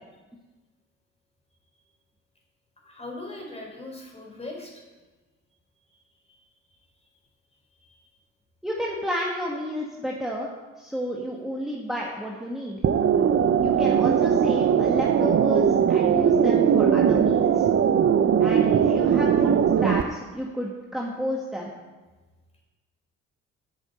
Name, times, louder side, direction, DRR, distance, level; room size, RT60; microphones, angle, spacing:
voice 1, 2.8-4.8 7.8-8.0, left 2 dB, 20° left, 0 dB, 4.0 m, -39 dB
voice 2, 8.6-10.5 10.8-12.8 13.6-17.7 18.4-21.7, equal, ahead, -3 dB, 1.7 m, -31 dB
sound 1, 12.8-20.0, right 8 dB, 45° right, 0.7 m, -20 dB
9.0 x 7.4 x 7.8 m, 1.2 s
cardioid pair, 90°, 30 cm